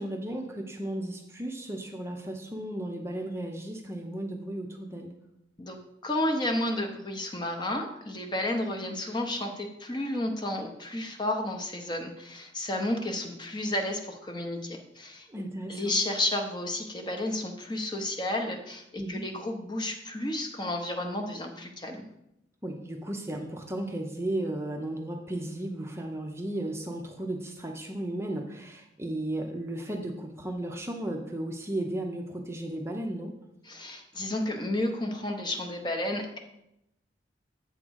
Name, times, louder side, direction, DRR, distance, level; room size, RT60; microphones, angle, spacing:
voice 1, 0.0-5.1 15.3-15.9 19.0-19.2 22.6-33.3, right 1 dB, 15° right, 2 dB, 0.6 m, -35 dB
voice 2, 5.6-15.3 15.7-22.0 33.7-36.4, left 1 dB, 25° left, 3 dB, 0.7 m, -32 dB
7.9 x 3.7 x 6.2 m, 0.83 s
head